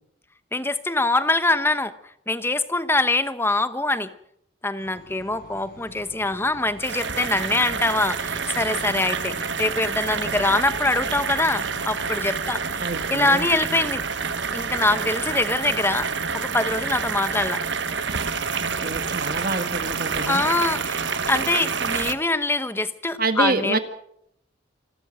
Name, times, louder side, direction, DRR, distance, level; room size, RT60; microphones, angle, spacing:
voice 1, 0.5-1.9 2.3-4.1 4.6-12.8 13.1-14.0 14.5-16.1 16.3-17.6 20.3-21.0 21.3-23.8, left 2 dB, 10° left, 12 dB, 1.0 m, -24 dB
sound 1, 4.8-16.3, left 1 dB, 50° left, 4.1 m, -45 dB
sound 2, 6.8-22.1, right 5 dB, 60° right, 1.3 m, -28 dB
voice 2, 12.8-13.5 18.6-20.4 23.2-23.8, right 3 dB, 45° right, 9 dB, 1.8 m, -27 dB
27.0 x 13.0 x 7.7 m, 0.74 s
head